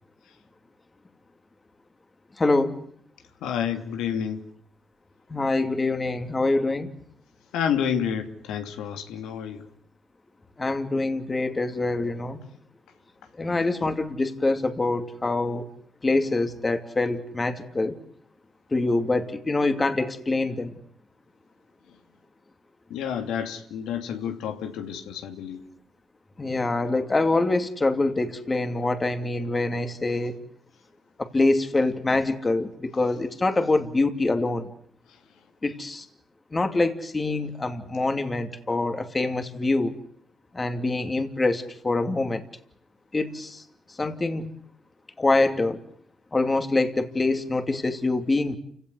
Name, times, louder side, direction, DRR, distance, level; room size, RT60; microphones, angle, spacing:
voice 1, 2.4-2.8 5.3-7.0 10.6-12.4 13.4-15.7 16.0-18.0 18.7-20.8 26.4-30.4 31.2-34.7 35.6-36.1 36.5-40.0 40.5-42.4 43.1-43.6 43.9-44.5 45.2-45.8 46.3-48.6, left 2 dB, 25° left, 8 dB, 2.7 m, -25 dB
voice 2, 3.4-4.5 7.5-9.6 22.9-25.6, left 8 dB, 90° left, 6 dB, 2.7 m, -29 dB
29.5 x 17.5 x 9.7 m, 0.63 s
cardioid pair, 90°, 0 cm